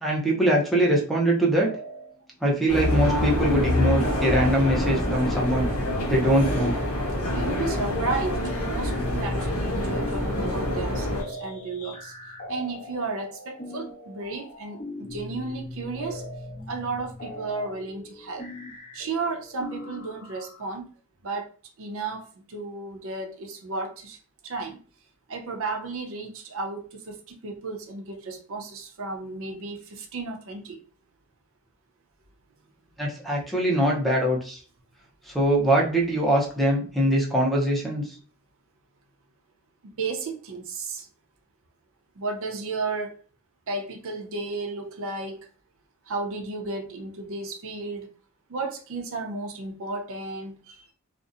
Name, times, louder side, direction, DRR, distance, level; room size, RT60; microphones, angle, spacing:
voice 1, 0.0-1.7 2.4-5.7 6.1-6.8 33.0-34.6 35.3-38.0, right 1 dB, ahead, -2 dB, 0.5 m, -22 dB
sound 1, 1.6-2.2 2.5-20.8, left 1 dB, 40° left, 0.8 m, -40 dB
sound 2, 2.7-11.2, left 1 dB, 70° left, 0.9 m, -26 dB
voice 2, 7.3-12.1 12.5-16.2 16.7-18.5 18.9-20.9 21.2-21.5 21.8-24.2 24.4-24.8 25.3-30.8 39.8-41.1 42.2-43.2 43.7-45.5 46.1-48.1 48.5-50.9, right 3 dB, 65° right, 4 dB, 0.5 m, -33 dB
2.6 x 2.0 x 2.4 m, 0.39 s
head